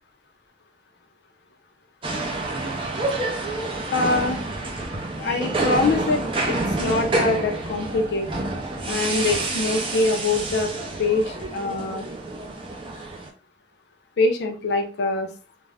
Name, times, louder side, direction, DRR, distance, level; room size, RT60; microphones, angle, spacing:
sound 1, 2.0-13.3, right 2 dB, 30° right, 0.4 m, -28 dB
voice 1, 3.9-4.4 5.2-6.2 6.5-8.3 8.9-10.7 11.0-12.1 14.2-15.3, left 3 dB, 70° left, 4 dB, 0.5 m, -24 dB
2.4 x 2.1 x 3.3 m, 0.36 s
head